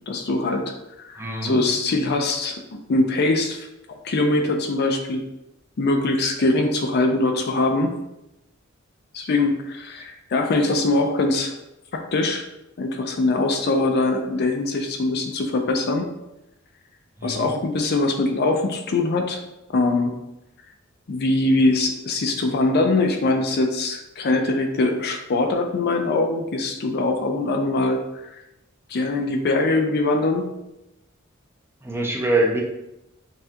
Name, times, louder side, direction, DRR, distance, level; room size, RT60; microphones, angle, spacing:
voice 1, 0.1-0.7 1.0-5.2 5.8-8.0 9.1-11.5 11.9-12.5 12.8-16.1 17.2-19.4 19.7-20.1 21.1-28.3 28.9-30.5, left 2 dB, 50° left, 4 dB, 0.5 m, -22 dB
voice 2, 1.2-1.6 17.2-17.5 31.8-32.6, right 1 dB, 10° right, 0 dB, 0.5 m, -24 dB
5.4 x 2.4 x 2.8 m, 0.89 s
head